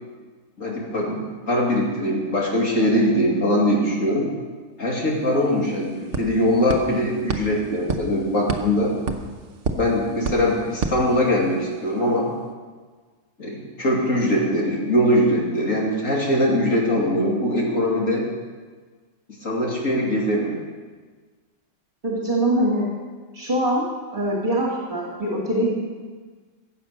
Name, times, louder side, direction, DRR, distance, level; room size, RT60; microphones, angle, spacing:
voice 1, 0.6-4.3 4.8-8.9 9.8-12.3 13.4-18.3 19.4-20.6, equal, 75° left, -3 dB, 3.1 m, -22 dB
sound 1, 5.0-5.1 5.3-11.8, right 3 dB, 65° right, 1.3 m, -31 dB
voice 2, 22.0-22.9 23.3-23.8 24.1-25.8, right 1 dB, 40° right, -3 dB, 2.3 m, -23 dB
15.0 x 8.0 x 6.5 m, 1.4 s
omnidirectional pair, 1.4 m